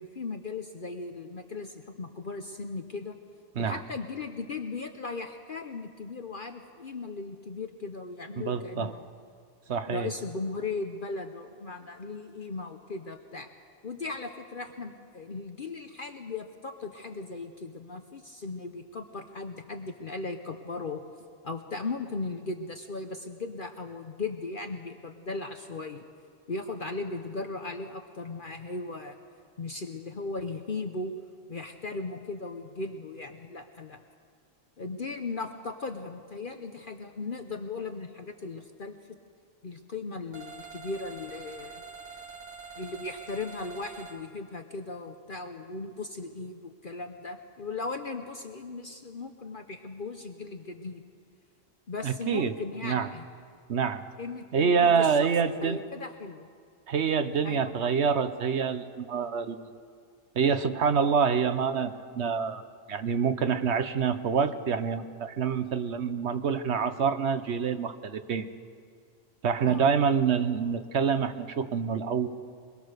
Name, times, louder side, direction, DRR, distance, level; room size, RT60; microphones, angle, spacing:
voice 1, 0.0-3.2 3.6-9.1 9.9-13.5 13.8-21.0 21.4-26.1 26.5-29.2 29.6-31.1 31.5-34.0 34.8-39.2 39.6-41.8 42.1-42.2 42.8-51.0 51.9-53.2 54.2-55.3 55.6-56.5 57.4-57.7 69.7-69.9, left 3 dB, 45° left, 6 dB, 1.0 m, -37 dB
voice 2, 8.4-8.9 9.7-10.1 52.0-52.5 52.8-53.1 53.7-54.0 54.5-55.8 56.9-59.6 60.3-62.6 62.9-68.5 69.4-72.3, right 6 dB, 60° right, 10 dB, 1.2 m, -26 dB
sound 1, 40.3-44.2, right 5 dB, 35° right, 2.0 m, -45 dB
23.0 x 21.5 x 6.7 m, 2.1 s
omnidirectional pair, 1.3 m